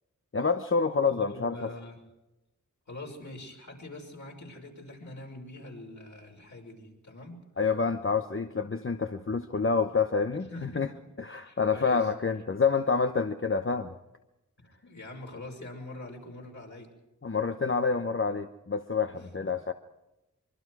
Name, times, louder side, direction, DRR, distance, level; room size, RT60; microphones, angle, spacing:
voice 1, 0.3-1.7 7.6-10.9 11.2-14.0 17.2-19.7, left 5 dB, 40° left, 7 dB, 1.0 m, -28 dB
voice 2, 1.1-2.0 2.9-7.4 10.5-12.1 14.6-16.9 19.1-19.5, left 1 dB, 60° left, 0 dB, 6.0 m, -44 dB
25.0 x 23.5 x 4.8 m, 0.94 s
wide cardioid pair, 75°, 32 cm